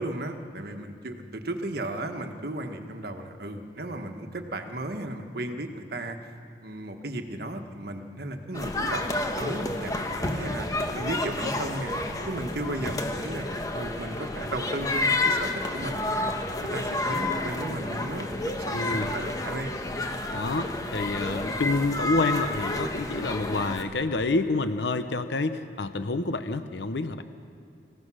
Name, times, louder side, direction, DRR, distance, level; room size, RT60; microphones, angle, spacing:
voice 1, 0.0-6.2 6.6-10.7 10.9-12.0 12.3-18.3 18.6-19.7, right 1 dB, 60° right, 5 dB, 1.5 m, -35 dB
sound 1, 8.5-23.8, left 2 dB, 20° left, 1.3 m, -30 dB
voice 2, 18.7-19.1 20.3-27.2, left 3 dB, 75° left, 10 dB, 0.8 m, -28 dB
25.5 x 16.0 x 6.3 m, 2.7 s
head